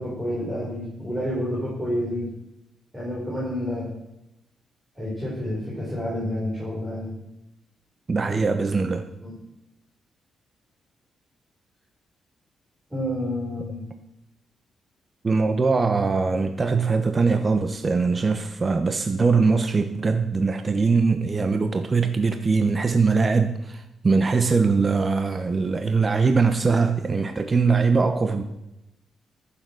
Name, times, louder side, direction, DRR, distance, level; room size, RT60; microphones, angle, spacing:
voice 1, 0.0-2.3 2.9-3.9 5.0-7.1 8.3-8.4 9.2-9.4 12.9-13.8, equal, 5° right, -7 dB, 5.6 m, -29 dB
voice 2, 8.1-9.0 15.2-28.4, right 4 dB, 35° right, 8 dB, 0.9 m, -22 dB
14.0 x 7.2 x 6.2 m, 0.91 s
cardioid pair, 95°, 0 cm